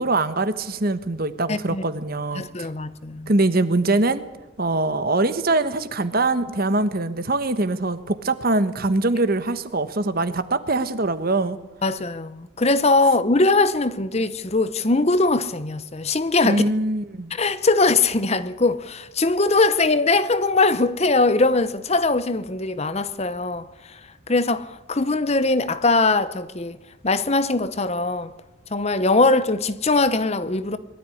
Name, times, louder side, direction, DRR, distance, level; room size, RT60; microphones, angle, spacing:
voice 1, 0.0-2.7 3.3-4.2 4.6-11.6 16.4-17.3, right 2 dB, 45° right, 1.2 m, -23 dB
voice 2, 1.5-1.8 2.4-3.3 11.8-16.6 17.3-23.7 24.3-26.8 27.0-28.3 28.7-30.8, left 3 dB, 30° left, 0.8 m, -21 dB
21.5 x 13.0 x 9.9 m
head